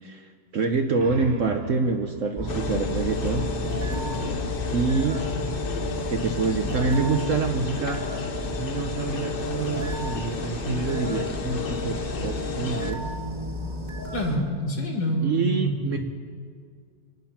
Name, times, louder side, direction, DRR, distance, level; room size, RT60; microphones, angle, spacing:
voice 1, 0.0-3.5 4.6-5.2 6.1-8.1 8.5-13.1 15.2-16.0, right 4 dB, 55° right, 5 dB, 0.9 m, -27 dB
sound 1, 0.7-4.1, right 4 dB, 85° right, 2.2 m, -41 dB
sound 2, 2.3-14.4, equal, 25° right, 1.6 m, -33 dB
sound 3, 2.5-12.9, left 4 dB, 40° left, 0.8 m, -32 dB
voice 2, 3.9-4.4 5.3-5.4 14.1-16.0, equal, 70° left, 1 dB, 3.0 m, -27 dB
25.5 x 9.2 x 5.9 m, 2.1 s
omnidirectional pair, 2.0 m